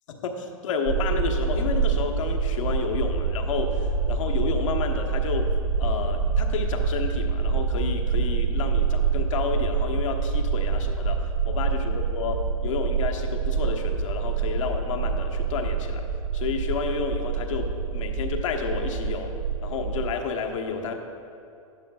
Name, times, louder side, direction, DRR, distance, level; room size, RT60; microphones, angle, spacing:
voice 1, 0.1-5.5 5.8-16.0 16.3-19.3 19.6-20.9, left 5 dB, 60° left, 3 dB, 1.1 m, -31 dB
sound 1, 0.9-20.1, right 5 dB, 65° right, 1.0 m, -26 dB
11.5 x 11.0 x 2.4 m, 2.6 s
hypercardioid pair, 120°, 18 cm